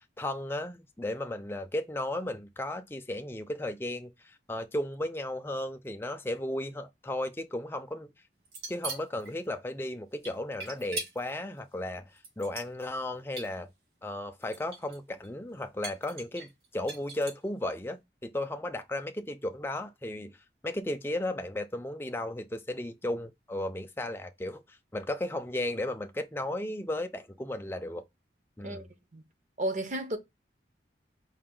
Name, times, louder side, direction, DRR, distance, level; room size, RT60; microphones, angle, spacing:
voice 1, 0.0-8.1 8.7-13.7 14.0-20.4 20.6-28.0 28.6-28.9, left 1 dB, 15° left, 0.4 m, -35 dB
sound 1, 8.5-9.3 10.2-11.3 12.2-13.1 13.4-13.5 14.4-15.0 15.2-15.3 15.8-17.5, right 3 dB, 60° right, 2.0 m, -40 dB
voice 2, 29.6-30.2, right 1 dB, 40° right, 0.8 m, -32 dB
4.8 x 2.5 x 3.7 m
head